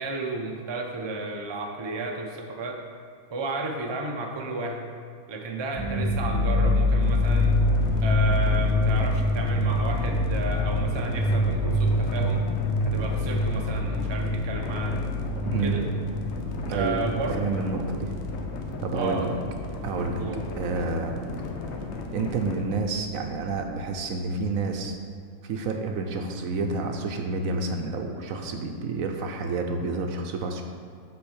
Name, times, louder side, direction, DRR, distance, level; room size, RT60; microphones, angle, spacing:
voice 1, 0.0-2.8 3.3-4.9 5.3-7.6 8.0-12.4 12.8-15.0 15.6-15.9 16.7-17.5 18.9-19.3 20.2-20.4, right 2 dB, 30° right, 1 dB, 0.5 m, -32 dB
sound 1, 5.8-20.9 21.1-22.2 22.6-22.7 23.0-23.7, left 1 dB, 25° left, 0.3 m, -26 dB
sound 2, 7.0-22.6, left 3 dB, 55° left, 0.9 m, -36 dB
voice 2, 15.4-15.8 16.6-18.1 18.8-19.2 19.8-20.2 20.6-21.2 22.1-25.0 25.4-30.6, right 3 dB, 70° right, 4 dB, 1.0 m, -29 dB
6.0 x 5.6 x 6.3 m, 2.3 s
omnidirectional pair, 1.6 m